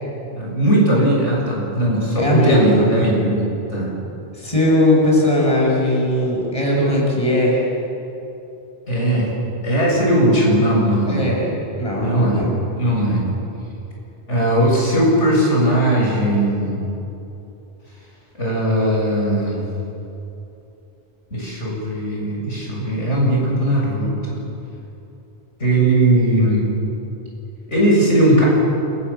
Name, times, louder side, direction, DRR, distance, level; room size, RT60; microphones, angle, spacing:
voice 1, 0.3-3.9 8.9-9.3 9.6-11.2 12.0-12.4 12.8-13.2 14.3-16.8 18.4-19.6 21.3-24.4 25.6-26.7 27.7-28.4, right 1 dB, 75° left, -3 dB, 7.9 m, -18 dB
voice 2, 2.2-3.1 4.3-7.6 11.1-12.5, left 1 dB, 30° left, -4 dB, 7.2 m, -19 dB
29.5 x 27.0 x 7.2 m, 2.9 s
omnidirectional pair, 1.2 m